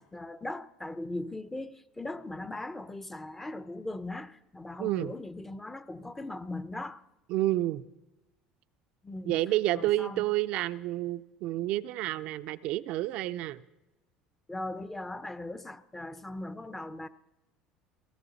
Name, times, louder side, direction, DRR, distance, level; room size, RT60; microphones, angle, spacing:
voice 1, 0.0-7.0 9.0-9.4 9.7-10.3 14.5-17.1, left 2 dB, 15° left, 0.7 m, -39 dB
voice 2, 4.8-5.1 7.3-7.8 9.3-13.6, right 15 dB, 65° right, 0.5 m, -29 dB
18.0 x 14.5 x 4.1 m
supercardioid pair, 85°, 2 cm